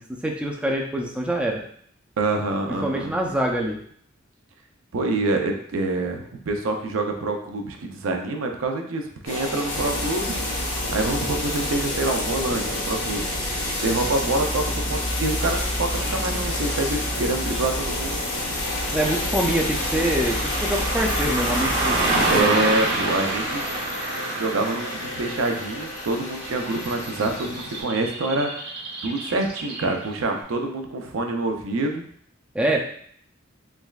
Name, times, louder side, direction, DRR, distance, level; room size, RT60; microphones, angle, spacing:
voice 1, 0.0-1.6 2.8-3.8 18.9-22.5 32.5-32.8, right 1 dB, 5° right, 0 dB, 0.3 m, -25 dB
voice 2, 2.2-3.1 4.9-10.4 10.9-13.3 13.8-18.2 22.3-23.6 24.3-28.5 29.0-32.0, right 2 dB, 85° right, 3 dB, 0.5 m, -26 dB
sound 1, 9.2-27.8, left 1 dB, 80° left, 1.1 m, -32 dB
Frying (food), 9.7-22.4, left 1 dB, 55° left, 0.9 m, -29 dB
Car passing by / Traffic noise roadway noise, 15.9-30.2, right 2 dB, 50° right, 0.7 m, -30 dB
3.4 x 3.1 x 2.3 m, 0.62 s
head